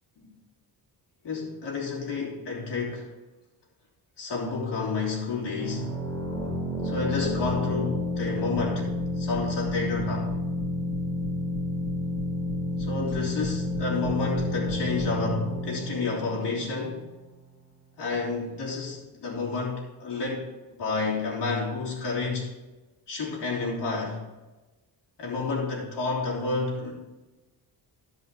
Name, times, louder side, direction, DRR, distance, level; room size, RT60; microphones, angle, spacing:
voice 1, 1.2-3.1 4.2-6.0 6.8-8.9 9.2-10.3 12.8-17.1 18.0-20.5 20.8-22.5 23.1-24.2 25.2-26.9, left 4 dB, 70° left, -4 dB, 3.4 m, -30 dB
sound 1, 5.6-17.1, left 1 dB, 10° left, 2.3 m, -30 dB
13.0 x 5.6 x 4.4 m, 1.1 s
wide cardioid pair, 125°, 42 cm